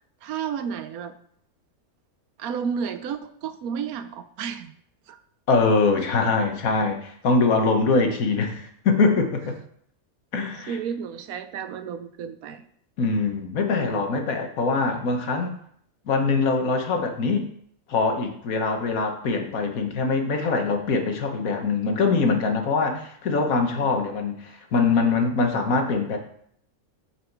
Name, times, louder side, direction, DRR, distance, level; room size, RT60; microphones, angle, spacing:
voice 1, 0.2-1.1 2.4-4.7 5.1-5.2 10.7-12.6 23.8-24.0, right 7 dB, 80° right, 11 dB, 1.1 m, -32 dB
voice 2, 5.5-9.5 10.3-10.8 13.0-15.6 16.1-17.4 17.9-26.2, left 4 dB, 75° left, 4 dB, 1.5 m, -23 dB
8.2 x 4.9 x 4.6 m, 0.65 s
omnidirectional pair, 1.5 m